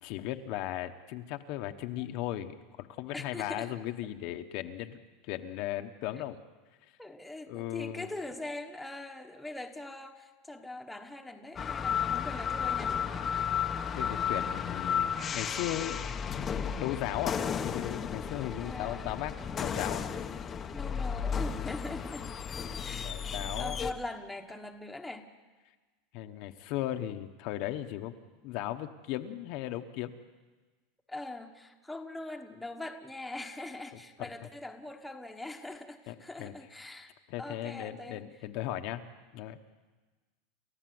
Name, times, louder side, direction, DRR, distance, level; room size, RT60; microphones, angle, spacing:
voice 1, 0.0-6.4 7.5-8.1 13.9-16.0 16.4-16.5 16.8-17.4 17.6-20.0 22.9-23.8 26.1-28.1 28.4-30.1 34.2-34.3 36.1-36.5 37.3-39.0 39.3-39.6, left 13 dB, 50° left, 6 dB, 1.1 m, -37 dB
voice 2, 3.1-3.7 7.0-13.0 18.6-19.1 20.7-22.3 22.8-23.1 23.6-25.3 31.1-37.1 37.4-38.2, left 2 dB, 5° left, 3 dB, 1.2 m, -42 dB
sound 1, 11.6-23.9, left 7 dB, 20° left, 0.8 m, -33 dB
29.5 x 14.0 x 7.8 m, 1.3 s
supercardioid pair, 160°, 0 cm